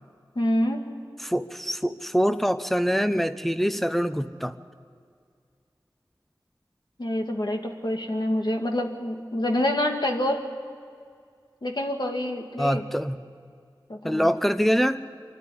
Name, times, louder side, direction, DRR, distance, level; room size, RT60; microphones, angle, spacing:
voice 1, 0.4-0.8 7.0-10.4 11.6-12.8 13.9-14.4, left 1 dB, 60° left, 2 dB, 2.2 m, -27 dB
voice 2, 1.2-4.5 12.6-13.2 14.0-15.0, equal, ahead, 11 dB, 0.8 m, -24 dB
25.5 x 12.0 x 9.8 m, 2.2 s
wide cardioid pair, 55°, 8 cm